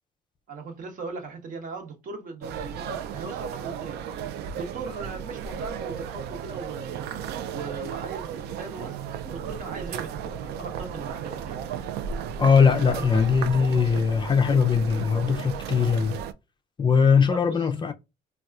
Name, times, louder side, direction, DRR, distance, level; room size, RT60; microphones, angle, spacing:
voice 1, 0.5-4.0 4.5-7.0 7.5-11.8 17.3-17.6, right 4 dB, 50° right, 1.0 m, -38 dB
sound 1, 2.4-16.3, right 8 dB, 80° right, 0.4 m, -34 dB
voice 2, 12.4-16.2 16.8-17.9, left 6 dB, 30° left, 0.4 m, -20 dB
4.1 x 2.3 x 2.3 m
cardioid pair, 110°, 17 cm